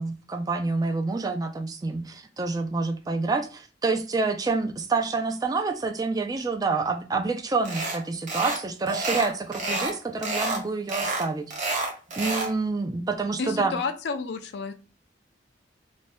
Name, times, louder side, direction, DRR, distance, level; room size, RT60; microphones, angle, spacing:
voice 1, 0.0-11.7 12.2-13.8, right 3 dB, 20° right, 0.3 m, -28 dB
sound 1, 7.7-8.0 8.3-8.6 8.9-9.9 10.2-10.6 10.9-12.5, right 2 dB, 45° right, 0.8 m, -29 dB
voice 2, 13.4-14.7, left 4 dB, 65° left, 0.4 m, -30 dB
2.6 x 2.2 x 3.3 m
head